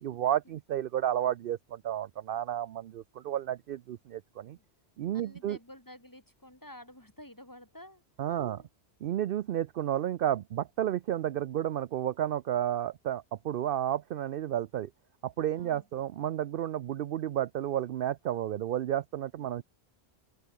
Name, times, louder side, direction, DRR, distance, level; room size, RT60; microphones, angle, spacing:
voice 1, 0.0-4.6 5.0-5.6 8.2-8.6 9.0-14.9 15.2-19.6, right 11 dB, 60° right, 0.7 m, -32 dB
voice 2, 5.1-8.0 8.3-8.7 15.5-15.9 19.5-19.6, left 1 dB, 15° left, 3.4 m, -51 dB
open air
omnidirectional pair, 1.2 m